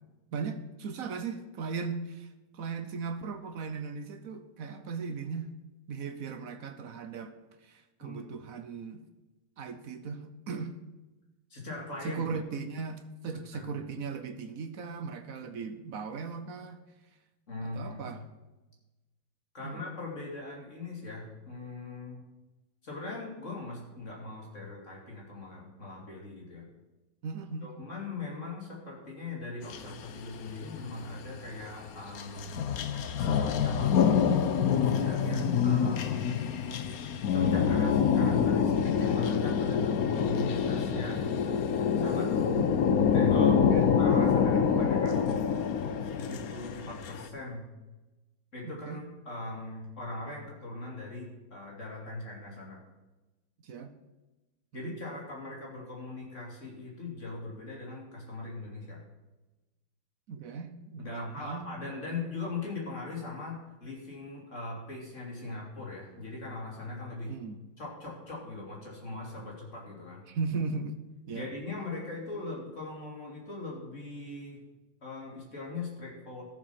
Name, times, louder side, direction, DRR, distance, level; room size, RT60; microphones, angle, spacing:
voice 1, 0.3-2.3 2.5-5.5 5.9-7.3 7.6-9.0 9.6-10.7 12.0-16.8 17.6-18.2 19.6-19.8 27.2-27.7 42.5-42.8 43.7-43.9 48.6-49.0 53.6-53.9 54.8-55.0 60.3-62.1 67.3-67.6 70.3-70.9 71.3-71.5, right 5 dB, 60° right, 9 dB, 0.9 m, -37 dB
voice 2, 11.5-12.2 13.3-13.7 17.5-18.1 19.5-22.2 22.8-26.6 27.6-32.6 33.1-34.2 34.8-36.3 37.1-41.3 42.0-42.3 43.1-43.6 44.0-45.3 46.2-47.7 48.5-52.8 54.7-59.0 61.0-67.4 67.8-70.2 71.3-74.6 75.0-76.4, left 2 dB, 35° left, -2 dB, 3.2 m, -40 dB
sound 1, 29.7-31.3 31.9-47.3, left 7 dB, 60° left, 0.9 m, -26 dB
13.5 x 7.4 x 5.9 m, 1.1 s
omnidirectional pair, 2.3 m